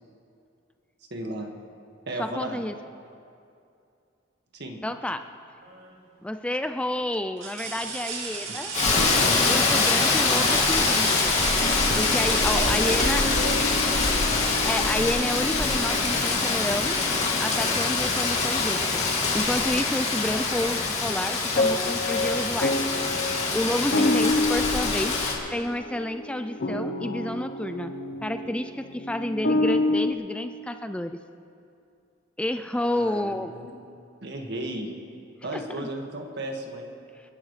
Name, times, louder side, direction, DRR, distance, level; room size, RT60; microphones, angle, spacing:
voice 1, 1.1-1.5 2.1-2.6 4.5-4.8 8.5-9.4 12.5-14.2 16.2-16.3 32.7-33.7 34.2-34.9 35.4-36.9, right 1 dB, 60° right, 2 dB, 1.8 m, -34 dB
voice 2, 2.2-2.7 4.8-5.2 6.2-8.7 9.5-11.4 12.0-13.3 14.6-17.0 17.4-19.0 19.3-23.1 23.5-25.2 25.5-27.9 28.2-31.2 32.4-33.5 35.8-35.9, left 1 dB, 5° left, 8 dB, 0.3 m, -30 dB
sound 1, 5.6-6.1 6.6-6.7 7.4-14.0 15.8-16.0 16.4-17.5 18.8-18.9, right 4 dB, 85° right, 2.3 m, -36 dB
Rain, 8.7-25.3, left 3 dB, 35° left, 2.4 m, -24 dB
sound 2, 11.6-17.9 21.6-30.1, left 2 dB, 60° left, 0.9 m, -30 dB
29.5 x 11.5 x 3.3 m, 2.5 s
head